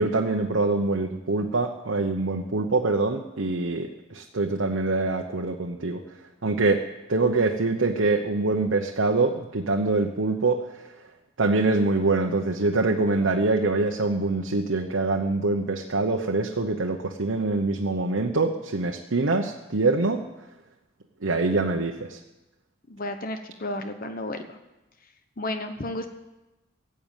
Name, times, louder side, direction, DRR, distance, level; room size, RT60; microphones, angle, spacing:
voice 1, 0.0-6.0 6.4-10.6 11.4-20.2 21.2-22.2, right 3 dB, 85° right, 2 dB, 1.0 m, -24 dB
voice 2, 22.9-24.6 25.4-26.1, left 1 dB, 45° left, 7 dB, 1.0 m, -32 dB
16.5 x 7.9 x 9.0 m, 1.0 s
head